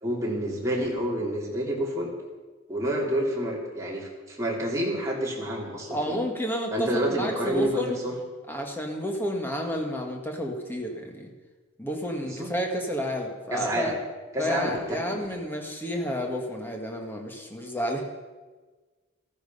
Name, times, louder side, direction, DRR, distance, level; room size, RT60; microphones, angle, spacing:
voice 1, 0.0-2.1 2.7-6.2 6.7-8.1 12.2-12.5 13.5-14.0 14.3-15.4, right 1 dB, 15° right, -3 dB, 3.0 m, -29 dB
voice 2, 5.9-8.0 8.5-11.3 11.8-13.9 14.4-18.0, equal, 10° left, 1 dB, 1.7 m, -30 dB
14.5 x 14.0 x 5.5 m, 1.3 s
head